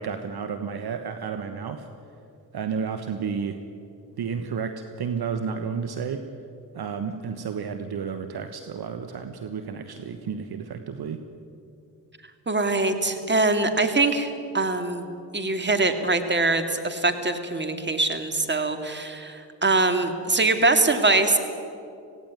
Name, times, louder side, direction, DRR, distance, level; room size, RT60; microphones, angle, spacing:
voice 1, 0.0-1.9 2.5-3.6 4.2-6.3 6.7-11.2, right 6 dB, 55° right, 8 dB, 1.4 m, -31 dB
voice 2, 12.5-15.1 15.3-21.4, right 2 dB, 25° right, 7 dB, 2.6 m, -23 dB
17.0 x 17.0 x 9.5 m, 2.6 s
hypercardioid pair, 50°, 46 cm